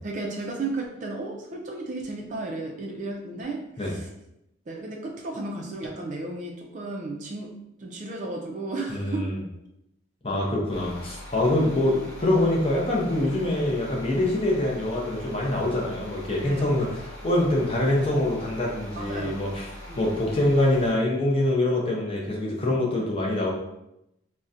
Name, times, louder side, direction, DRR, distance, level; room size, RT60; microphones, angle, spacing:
voice 1, 0.0-4.1 4.7-7.5 7.8-9.3 10.3-10.6 16.4-16.8 19.0-19.4 19.9-20.0, right 2 dB, 40° right, 1 dB, 0.4 m, -34 dB
voice 2, 8.9-9.4 10.2-19.7 20.0-23.5, left 1 dB, 30° left, -3 dB, 0.6 m, -24 dB
sound 1, 10.7-20.9, left 1 dB, 75° left, 0.9 m, -42 dB
3.9 x 2.1 x 2.4 m, 0.85 s
head